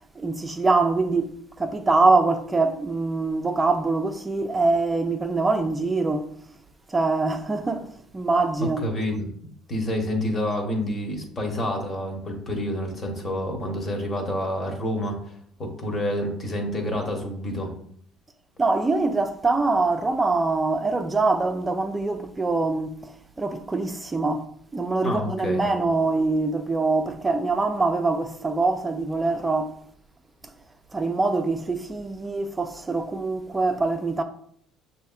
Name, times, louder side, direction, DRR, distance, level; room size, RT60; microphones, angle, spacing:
voice 1, 0.2-6.3 6.9-8.8 18.6-22.9 23.4-24.4 24.7-29.7 30.9-34.2, right 3 dB, 20° right, 0.5 m, -24 dB
voice 2, 8.6-9.3 9.7-15.2 15.6-17.7 25.0-25.6, left 1 dB, 35° left, 1.1 m, -28 dB
6.5 x 2.8 x 2.4 m
cardioid pair, 95°, 0 cm